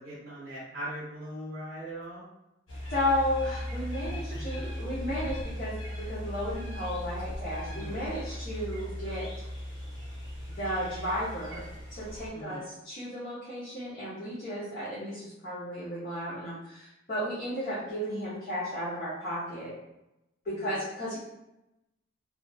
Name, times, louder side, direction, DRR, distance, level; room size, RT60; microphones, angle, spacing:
voice 1, 0.0-2.3 4.1-4.4 7.7-7.9 12.3-12.7 20.6-20.7, right 1 dB, 50° right, -7 dB, 0.7 m, -40 dB
sound 1, 2.7-12.3, equal, 85° left, 0.9 m, -38 dB
voice 2, 2.9-9.3 10.5-19.7 20.4-21.2, equal, 45° left, -11 dB, 0.8 m, -34 dB
2.7 x 2.2 x 2.6 m, 0.89 s
head